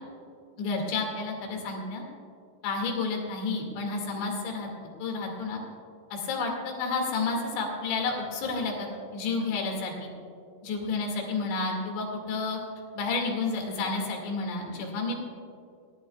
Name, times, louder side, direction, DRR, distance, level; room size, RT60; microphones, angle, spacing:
voice 1, 0.6-2.0 2.6-4.7 5.0-5.6 6.1-10.1 10.6-12.6 12.9-15.3, left 3 dB, 70° left, 1 dB, 4.5 m, -30 dB
23.5 x 17.5 x 2.4 m, 2.4 s
omnidirectional pair, 5.6 m